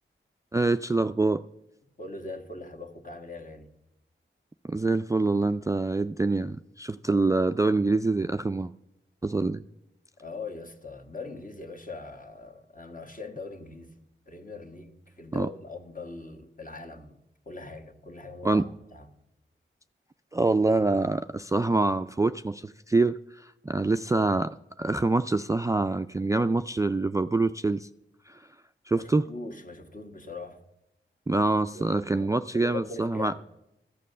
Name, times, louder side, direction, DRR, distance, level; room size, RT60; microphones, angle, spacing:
voice 1, 0.5-1.4 4.6-8.7 9.2-9.6 15.3-15.5 18.4-18.7 20.3-27.9 28.3-28.4 28.9-29.3 31.3-33.3, right 3 dB, 15° right, 0.3 m, -25 dB
voice 2, 2.0-3.7 7.1-7.2 10.2-17.2 17.4-19.1 28.9-30.6 31.7-33.4, left 3 dB, 40° left, 1.6 m, -41 dB
13.5 x 7.5 x 6.7 m
cardioid pair, 45°, 21 cm